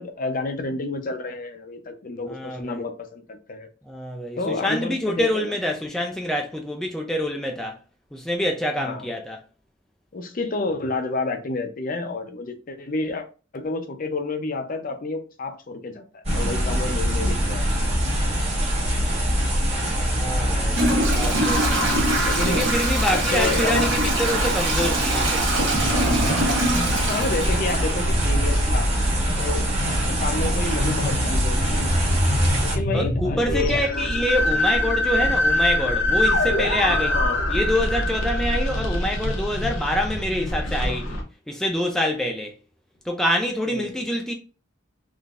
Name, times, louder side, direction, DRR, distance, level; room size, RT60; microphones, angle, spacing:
voice 1, 0.0-3.7 4.4-5.5 8.8-9.1 10.1-13.2 13.5-17.7 22.2-22.7 23.1-23.9 27.1-28.9 29.4-31.8 32.6-34.1 37.1-37.4 43.6-44.0, left 3 dB, 45° left, 0.6 m, -30 dB
voice 2, 2.3-2.8 3.8-7.8 8.1-9.4 20.1-21.9 22.5-25.5 32.3-32.6 32.9-37.2 37.5-42.5 43.0-44.3, left 1 dB, 5° left, 0.3 m, -26 dB
sound 1, 16.3-32.8, equal, 35° right, 1.3 m, -24 dB
Toilet flush / Trickle dribble, 19.9-20.0 20.7-28.5, right 1 dB, 85° right, 1.3 m, -24 dB
sound 2, 25.8-41.2, left 1 dB, 75° left, 0.8 m, -25 dB
3.7 x 2.6 x 2.4 m
head